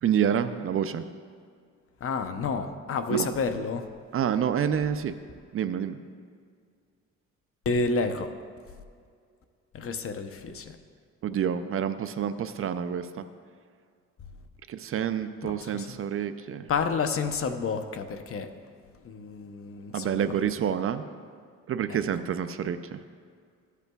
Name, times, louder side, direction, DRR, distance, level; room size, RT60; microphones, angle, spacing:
voice 1, 0.0-1.0 3.1-3.3 4.1-5.2 5.5-6.0 11.2-13.2 14.7-16.7 19.9-21.0 21.7-23.0, right 8 dB, 45° right, 0.5 m, -28 dB
voice 2, 2.0-3.9 7.6-8.3 9.7-10.8 15.4-16.0 16.7-18.5 19.0-20.3 21.9-22.0, left 4 dB, 50° left, 0.7 m, -30 dB
14.5 x 8.2 x 2.3 m
cardioid pair, 90°, 30 cm